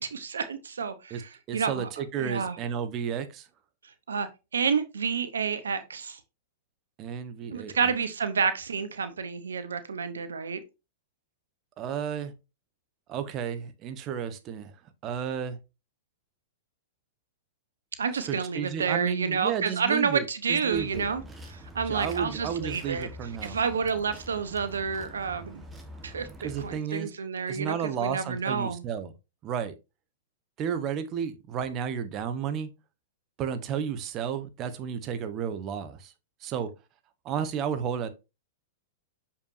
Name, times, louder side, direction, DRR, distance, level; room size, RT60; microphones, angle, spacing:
voice 1, 0.0-1.9 2.2-2.6 4.1-6.2 7.5-10.6 18.0-21.2 21.5-23.1 23.4-25.6 26.0-26.3 26.6-27.7 28.0-28.8, right 6 dB, 85° right, 0.8 m, -29 dB
voice 2, 1.5-3.5 7.0-7.9 11.8-12.3 13.1-14.7 15.0-15.6 18.3-21.1 21.9-23.6 26.4-27.1 27.5-29.1 29.4-29.7 30.6-32.7 33.4-36.1 36.4-36.7 37.2-38.1, right 8 dB, 35° right, 1.1 m, -32 dB
sound 1, 20.7-26.7, left 1 dB, 15° right, 1.4 m, -45 dB
6.7 x 5.7 x 2.6 m
hypercardioid pair, 115°, 0 cm